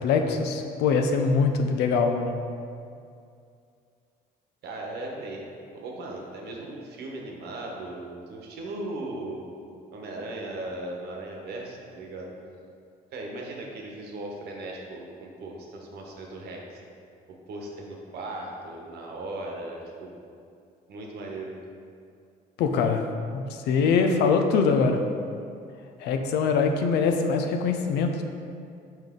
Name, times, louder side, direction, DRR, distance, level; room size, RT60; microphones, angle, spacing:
voice 1, 0.0-2.5 22.6-25.1 26.0-28.2, left 5 dB, 80° left, 5 dB, 0.6 m, -23 dB
voice 2, 4.6-9.5 9.9-12.3 13.1-16.8 17.3-20.1 20.9-21.5, right 2 dB, 70° right, -1 dB, 1.2 m, -37 dB
5.8 x 5.4 x 3.7 m, 2.4 s
cardioid pair, 110°, 17 cm